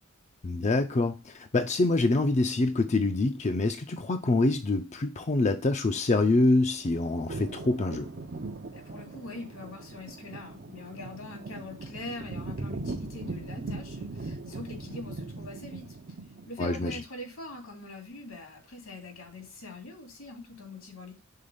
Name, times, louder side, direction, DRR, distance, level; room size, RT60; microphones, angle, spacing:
voice 1, 0.4-8.1 16.6-16.9, left 2 dB, 35° left, 0.5 m, -25 dB
sound 1, 6.4-16.7, right 3 dB, 50° right, 0.6 m, -40 dB
voice 2, 8.7-16.0 16.5-21.2, left 2 dB, 85° left, 2.4 m, -43 dB
5.6 x 3.9 x 5.1 m
head